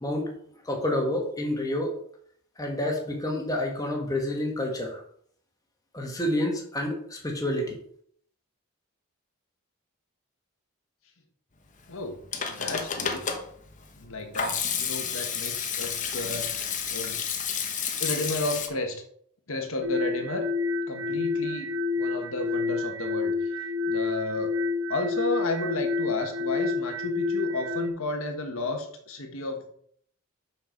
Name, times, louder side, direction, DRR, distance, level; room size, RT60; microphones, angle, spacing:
voice 1, 0.6-1.9 2.6-5.0 5.9-7.8, left 1 dB, 15° left, 1 dB, 1.7 m, -28 dB
Hands / Sink (filling or washing), 12.0-18.7, left 6 dB, 35° left, 1.0 m, -31 dB
voice 2, 12.5-13.2 14.0-17.2 18.0-19.0 19.5-20.5 20.9-23.5 23.9-24.6 24.9-29.8, left 2 dB, 70° left, 4 dB, 1.4 m, -32 dB
sound 1, 19.8-27.9, left 4 dB, 80° right, 1.0 m, -29 dB
6.1 x 6.1 x 5.1 m, 0.63 s
head